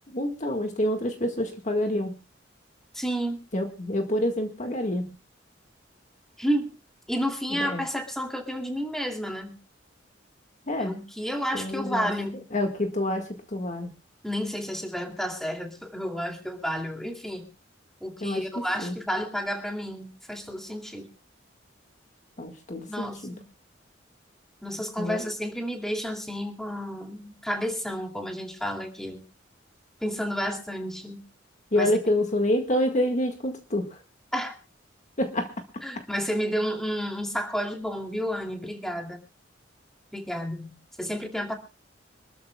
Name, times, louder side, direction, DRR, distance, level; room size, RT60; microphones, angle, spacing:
voice 1, 0.1-2.2 3.5-5.1 7.6-7.8 10.7-11.0 11.5-12.1 12.5-13.9 18.2-18.4 18.8-18.9 22.4-23.3 25.0-25.2 31.7-34.0 35.2-35.5 35.9-36.0, left 1 dB, 40° left, 4 dB, 1.8 m, -27 dB
voice 2, 2.9-3.4 6.4-6.7 7.1-9.5 10.8-12.5 14.2-17.5 18.0-21.1 22.9-23.4 24.6-29.2 30.0-31.2 31.7-31.9 34.3-34.5 35.8-39.2 40.1-41.5, equal, ahead, 2 dB, 2.6 m, -31 dB
26.0 x 13.5 x 2.3 m, 0.31 s
head